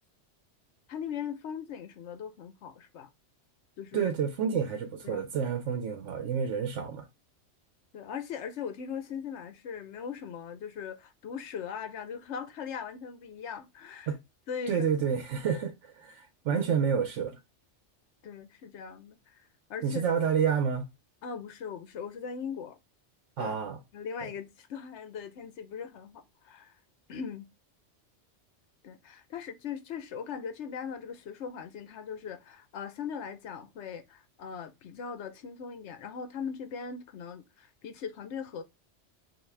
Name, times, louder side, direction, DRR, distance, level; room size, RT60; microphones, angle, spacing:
voice 1, 0.9-3.1 3.8-4.1 5.0-5.2 7.9-14.1 14.5-14.8 15.5-15.6 16.5-16.6 18.2-19.2 19.7-20.0 21.2-22.8 23.4-23.5 23.9-26.7 27.1-27.5 28.8-38.6, left 7 dB, 75° left, 1.0 m, -39 dB
voice 2, 3.9-7.1 14.1-14.2 14.7-17.4 19.8-20.9 23.4-23.8 24.2-24.3, right 7 dB, 80° right, 1.0 m, -29 dB
5.7 x 2.6 x 3.3 m
omnidirectional pair, 1.2 m